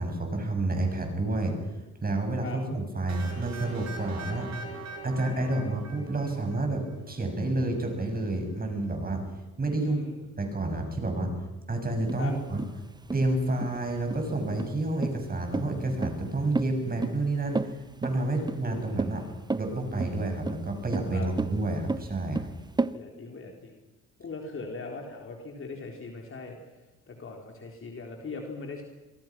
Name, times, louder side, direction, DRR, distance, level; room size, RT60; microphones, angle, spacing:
voice 1, 0.0-1.6 2.0-4.5 5.0-9.2 9.6-10.0 10.4-11.3 11.7-12.6 13.1-19.3 19.5-22.5, right 2 dB, 30° right, 4 dB, 7.1 m, -29 dB
sound 1, 3.1-6.9, right 3 dB, 65° right, 6.2 m, -42 dB
voice 2, 9.8-10.2 12.2-12.3 18.7-19.3 21.1-21.3 22.9-23.8 24.2-26.6 27.1-28.8, left 3 dB, 45° left, 1 dB, 3.9 m, -40 dB
sound 2, 12.1-22.9, right 3 dB, 15° right, 0.8 m, -33 dB
26.5 x 22.5 x 6.1 m, 1.1 s
cardioid pair, 90°, 30 cm